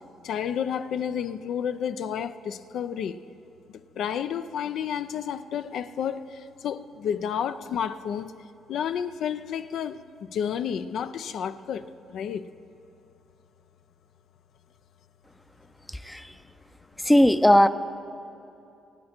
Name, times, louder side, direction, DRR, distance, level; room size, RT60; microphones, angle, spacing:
voice 1, 0.2-3.2 4.0-6.2 6.6-8.3 8.7-10.0 10.3-11.8 12.1-12.5, left 8 dB, 75° left, 0.5 m, -30 dB
voice 2, 17.1-17.7, equal, 5° left, 0.5 m, -17 dB
23.5 x 8.7 x 4.4 m
cardioid pair, 90°, 0 cm